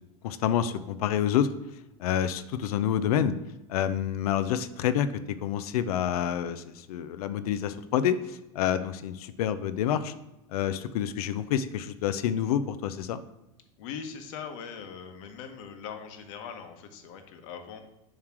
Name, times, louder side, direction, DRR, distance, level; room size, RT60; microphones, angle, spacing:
voice 1, 0.2-1.5 2.0-3.3 3.7-5.1 5.4-10.1 10.5-13.2, left 9 dB, 75° left, 12 dB, 0.5 m, -28 dB
voice 2, 13.8-17.8, left 7 dB, 60° left, 6 dB, 1.2 m, -41 dB
7.3 x 3.2 x 6.0 m, 0.95 s
supercardioid pair, 140°, 19 cm